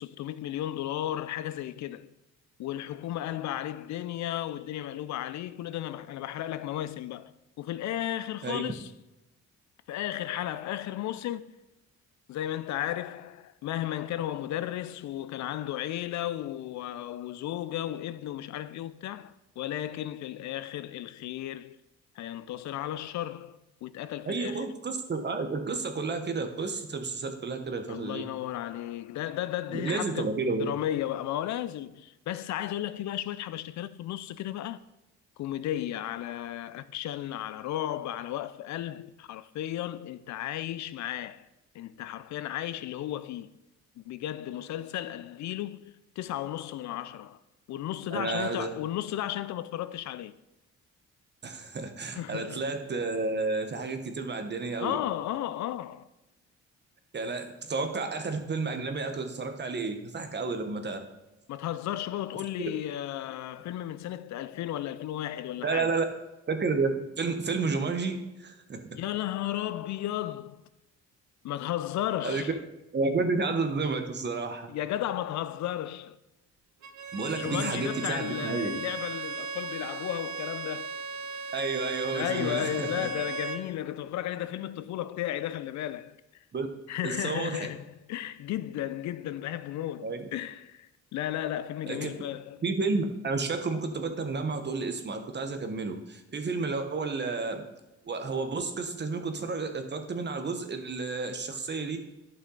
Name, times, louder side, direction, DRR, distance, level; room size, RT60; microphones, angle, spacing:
voice 1, 0.0-2.1 2.6-8.9 9.9-11.4 12.3-21.8 22.2-24.7 27.9-34.8 35.4-41.5 41.7-43.5 44.0-47.4 47.7-50.3 52.1-52.6 54.8-56.1 61.5-66.0 69.0-70.6 71.4-72.6 74.7-76.2 77.3-80.9 82.1-86.2 86.9-92.6, left 12 dB, 65° left, 0.5 m, -34 dB
voice 2, 24.2-28.2 29.7-30.7 48.1-48.7 51.4-55.0 57.1-61.0 65.6-66.0 66.5-69.0 72.2-72.4 72.9-74.7 77.1-78.7 81.5-83.1 86.5-86.7 87.0-87.7 90.0-90.3 91.8-92.1 92.6-97.6 98.0-102.0, right 4 dB, 35° right, 1.1 m, -31 dB
Bowed string instrument, 76.8-83.7, right 4 dB, 70° right, 0.8 m, -37 dB
11.5 x 5.6 x 3.9 m
cardioid pair, 90°, 30 cm